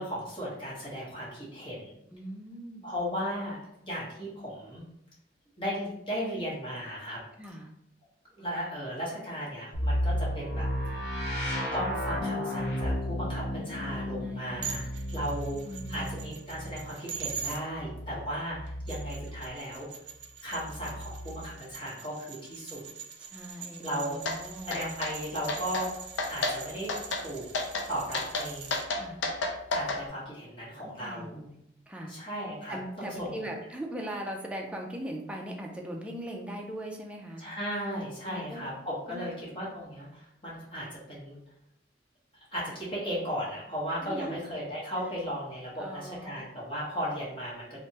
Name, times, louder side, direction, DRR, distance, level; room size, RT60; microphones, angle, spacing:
voice 1, 0.0-2.0 2.8-3.6 3.9-4.8 5.6-7.2 8.4-10.7 11.7-15.6 15.9-19.9 20.4-22.8 23.8-24.2 24.7-27.4 27.9-28.7 29.7-31.4 32.1-33.5 37.4-41.4 42.5-47.8, equal, 30° left, -7 dB, 0.9 m, -36 dB
voice 2, 2.1-2.9 7.4-7.7 13.6-14.6 15.7-16.2 23.2-24.8 28.9-29.2 31.0-31.6 31.9-32.1 32.7-37.4 38.3-38.6 39.1-39.3 44.0-44.3 45.8-46.5, right 1 dB, 5° right, 0 dB, 0.3 m, -40 dB
sound 1, 9.7-19.6 20.6-21.6, equal, 65° left, 0.8 m, -34 dB
sound 2, 14.6-17.6 18.7-28.9, right 7 dB, 75° right, 0.4 m, -43 dB
sound 3, 24.3-24.4 24.7-25.1 25.5-25.9 26.2-26.6 26.9-27.2 27.5-27.9 28.1-30.0, left 3 dB, 85° left, 0.5 m, -30 dB
3.2 x 2.1 x 2.7 m, 0.80 s
head